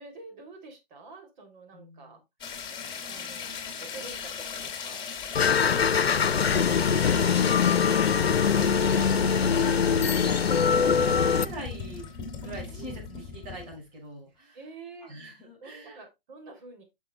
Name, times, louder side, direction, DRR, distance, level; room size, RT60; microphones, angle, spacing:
voice 1, 0.0-2.2 3.0-5.1 5.6-6.2 7.1-7.7 12.7-13.0 14.5-15.1 15.6-16.8, right 3 dB, 50° right, 3 dB, 3.4 m, -48 dB
voice 2, 1.7-2.2 5.4-6.0 8.4-14.6 15.0-16.0, equal, 25° right, -4 dB, 5.7 m, -44 dB
sound 1, 2.4-13.8, left 6 dB, 15° left, 2.4 m, -38 dB
sound 2, 5.3-11.4, left 6 dB, 90° left, 0.8 m, -23 dB
11.5 x 6.2 x 2.4 m, 0.21 s
hypercardioid pair, 135°, 30 cm